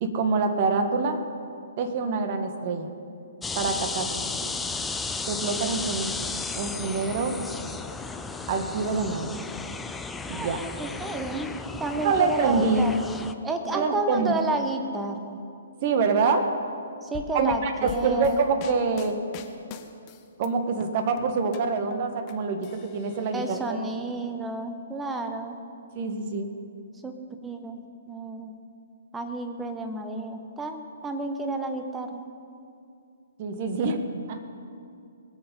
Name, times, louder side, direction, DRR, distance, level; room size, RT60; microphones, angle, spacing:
voice 1, 0.0-1.2 1.8-2.9 3.5-4.1 4.4-4.5 5.3-6.1 6.6-7.4 8.5-9.3 10.3-10.6 12.0-12.9 13.7-14.3 15.8-16.5 17.3-19.2 20.4-23.8 25.9-26.5 33.4-34.4, right 4 dB, 40° right, 6 dB, 1.4 m, -26 dB
sound 1, 3.4-13.3, left 4 dB, 10° left, 0.5 m, -34 dB
voice 2, 10.3-11.5 11.8-12.9 13.4-15.4 17.0-18.4 23.3-25.6 27.0-27.2 27.4-27.8 28.1-28.6 29.1-32.2, right 2 dB, 10° right, 6 dB, 1.1 m, -31 dB
sound 2, 17.1-20.5 20.8-22.3 22.6-23.5, left 7 dB, 30° left, 0.9 m, -42 dB
21.0 x 8.0 x 5.5 m, 2.5 s
figure-of-eight pair, 125°, 0 cm